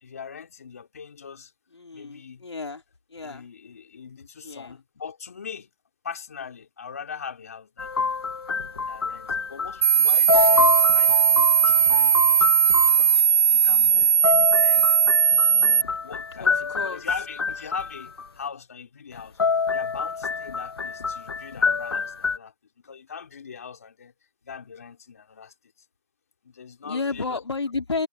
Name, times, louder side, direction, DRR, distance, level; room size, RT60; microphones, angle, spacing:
voice 1, 0.0-1.5 1.9-2.5 3.2-5.7 6.0-7.9 8.9-12.5 12.8-13.2 13.5-14.9 15.5-19.4 19.7-22.5 22.8-24.1 24.4-25.5 26.4-27.4, left 6 dB, 35° left, 3.1 m, -41 dB
voice 2, 1.7-2.8 3.1-3.4 4.4-4.8 16.4-17.0 26.8-28.1, left 4 dB, 85° left, 3.4 m, -31 dB
sound 1, 7.8-10.0 10.3-13.0 14.0-18.3 19.2-22.4, left 5 dB, 65° left, 0.6 m, -26 dB
sound 2, 9.8-15.8, right 6 dB, 65° right, 0.4 m, -18 dB
hypercardioid pair, 175°, 14 cm